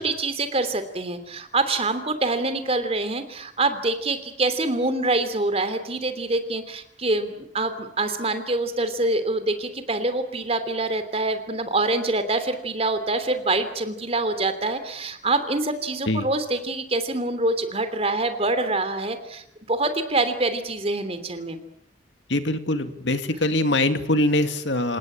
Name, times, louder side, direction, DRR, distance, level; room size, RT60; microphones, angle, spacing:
voice 1, 0.0-21.6, right 2 dB, 35° right, 10 dB, 3.0 m, -25 dB
voice 2, 22.3-25.0, left 1 dB, 80° left, 9 dB, 2.2 m, -23 dB
28.5 x 17.5 x 8.8 m, 0.73 s
head